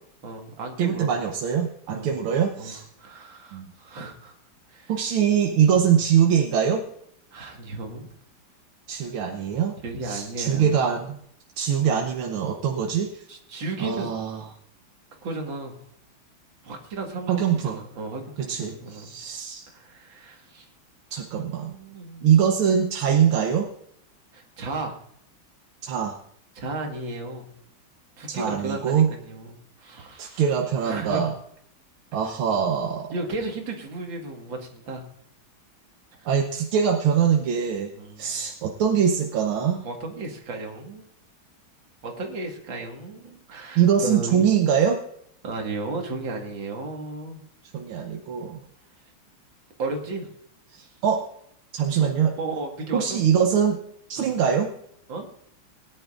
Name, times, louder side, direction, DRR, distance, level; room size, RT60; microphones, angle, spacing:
voice 1, 0.2-1.1 1.9-2.1 2.6-4.4 4.7-4.9 5.8-5.9 7.3-8.1 9.8-10.8 13.3-14.1 15.2-15.8 16.6-19.1 19.7-20.7 21.3-22.3 24.3-25.0 26.5-27.5 28.2-30.5 30.8-31.3 33.1-35.1 36.2-36.3 37.9-38.4 39.8-41.0 42.0-44.5 45.4-47.4 49.8-50.3 50.8-50.9 52.0-53.2 54.2-54.4 55.1-55.3, right 2 dB, 65° right, 2 dB, 2.5 m, -34 dB
voice 2, 0.8-2.8 3.5-3.7 4.9-6.8 8.9-9.7 10.0-11.2 11.6-13.2 13.8-14.4 17.3-17.8 18.5-19.7 21.1-21.7 22.2-23.7 25.8-26.2 28.3-29.1 30.2-31.3 32.1-33.1 36.2-37.9 38.2-39.8 43.7-45.0 47.7-48.6 50.7-51.3 51.7-52.3 52.9-53.8 54.1-54.7, right 8 dB, 85° right, 3 dB, 1.7 m, -23 dB
21.0 x 10.5 x 2.5 m, 0.72 s
omnidirectional pair, 2.3 m